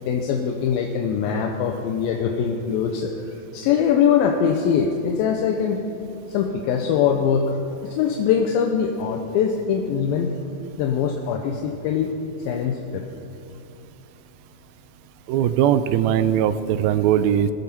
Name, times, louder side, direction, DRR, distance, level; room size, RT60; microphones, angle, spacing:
voice 1, 0.0-5.8 6.3-7.5 7.8-10.3 10.8-12.1 12.5-13.0, left 7 dB, 80° left, 2 dB, 2.6 m, -22 dB
voice 2, 15.3-17.5, right 10 dB, 80° right, 12 dB, 2.3 m, -20 dB
20.0 x 14.5 x 4.4 m, 2.6 s
omnidirectional pair, 4.3 m